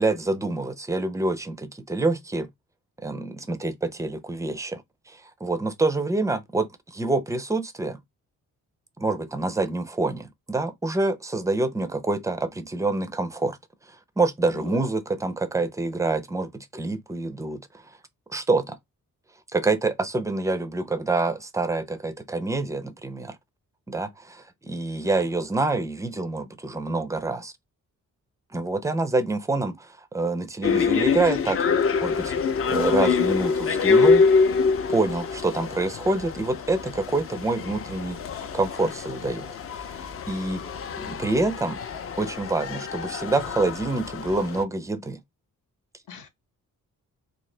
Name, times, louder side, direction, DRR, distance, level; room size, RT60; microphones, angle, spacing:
voice 1, 0.0-2.5 3.0-4.8 5.1-8.0 9.0-13.6 14.2-17.6 18.3-18.8 19.5-23.4 23.9-27.5 28.5-31.6 32.0-32.3 32.7-34.2 34.9-39.5 40.0-40.6 41.0-41.8 42.2-45.2, right 2 dB, 10° right, 0.4 m, -26 dB
voice 2, 14.5-15.0 25.0-25.1 46.1-46.3, left 6 dB, 75° left, 0.9 m, -42 dB
sound 1, 30.6-44.6, left 5 dB, 45° left, 0.5 m, -25 dB
3.7 x 2.7 x 3.2 m
wide cardioid pair, 165°, 32 cm